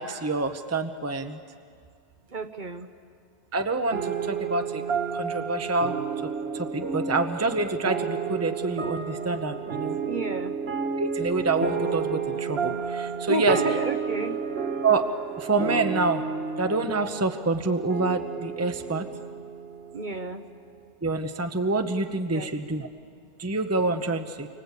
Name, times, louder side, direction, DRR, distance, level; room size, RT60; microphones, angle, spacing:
voice 1, 0.0-1.4 3.5-4.8 5.1-6.0 6.2-10.0 11.0-13.6 14.8-15.1 15.4-16.2 16.6-19.1 21.0-22.9 23.4-24.5, right 3 dB, 15° right, 7 dB, 0.8 m, -27 dB
voice 2, 2.3-2.9 10.0-10.5 13.3-14.4 19.9-20.5 22.3-22.5, right 2 dB, 45° right, 7 dB, 1.1 m, -30 dB
sound 1, 3.9-20.7, right 6 dB, 60° right, 1.4 m, -31 dB
29.5 x 24.5 x 8.2 m, 2.2 s
omnidirectional pair, 1.2 m